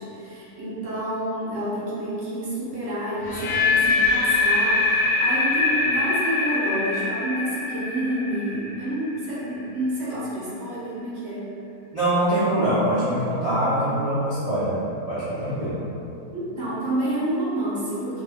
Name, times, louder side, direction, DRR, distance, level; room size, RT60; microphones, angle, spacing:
voice 1, 0.0-11.5 16.3-18.2, right 1 dB, 60° right, -8 dB, 0.7 m, -29 dB
sound 1, 3.2-9.2, left 3 dB, 85° left, 1.1 m, -23 dB
voice 2, 11.9-15.8, right 1 dB, 85° right, -14 dB, 0.3 m, -23 dB
2.6 x 2.2 x 3.3 m, 2.7 s
omnidirectional pair, 1.6 m